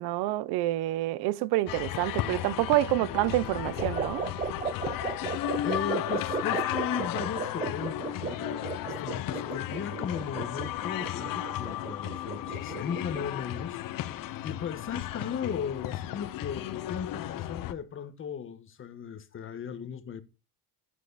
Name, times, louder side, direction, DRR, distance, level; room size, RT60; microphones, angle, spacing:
voice 1, 0.0-4.2, right 16 dB, 85° right, 0.8 m, -27 dB
sound 1, 1.7-17.7, left 13 dB, 60° left, 1.2 m, -34 dB
sound 2, 3.8-13.4, right 7 dB, 20° right, 0.6 m, -36 dB
voice 2, 5.6-13.8 14.4-20.2, left 7 dB, 35° left, 1.5 m, -36 dB
15.0 x 9.6 x 4.2 m
cardioid pair, 165°, 38 cm